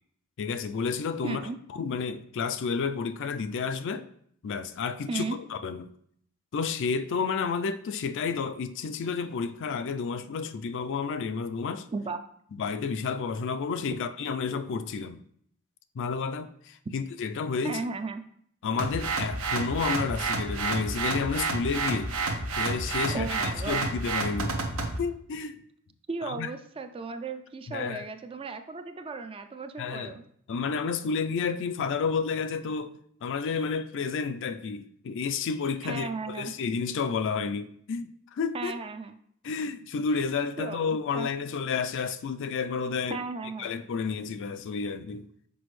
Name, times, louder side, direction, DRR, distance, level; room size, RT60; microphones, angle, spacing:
voice 1, 0.4-1.4 1.7-4.1 4.4-5.2 5.5-5.9 6.5-11.9 12.5-15.2 15.9-17.8 18.6-22.1 22.6-24.6 25.0-25.6 26.3-26.5 27.7-28.0 29.8-30.1 30.5-32.9 33.2-38.7 39.4-43.2 43.6-45.3, left 5 dB, 60° left, 0.4 m, -31 dB
voice 2, 1.2-1.6 5.1-5.4 11.9-12.2 17.6-18.2 23.1-23.8 26.1-30.2 35.8-36.5 38.5-39.1 40.6-41.3 43.1-43.7, right 4 dB, 25° right, 0.4 m, -35 dB
sound 1, 18.8-25.0, right 3 dB, 75° right, 0.8 m, -30 dB
6.1 x 5.0 x 3.1 m
head